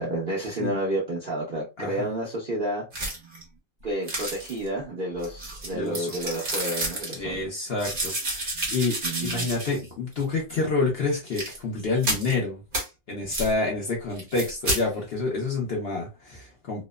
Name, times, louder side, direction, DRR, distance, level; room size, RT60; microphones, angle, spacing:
voice 1, 0.0-2.8 3.8-7.7 9.0-9.5, right 1 dB, 70° right, 0.5 m, -30 dB
voice 2, 1.8-2.1 5.7-6.2 7.1-9.0 9.2-12.6 13.1-16.9, left 3 dB, 65° left, 0.6 m, -28 dB
sound 1, 2.9-3.4 4.1-4.7 5.2-7.2 7.8-9.9 10.2-10.3 11.3-11.6 12.0-12.3 12.7-12.9 13.3-13.5 14.2-14.8, right 1 dB, 40° right, 0.9 m, -30 dB
2.9 x 2.1 x 2.3 m
omnidirectional pair, 1.9 m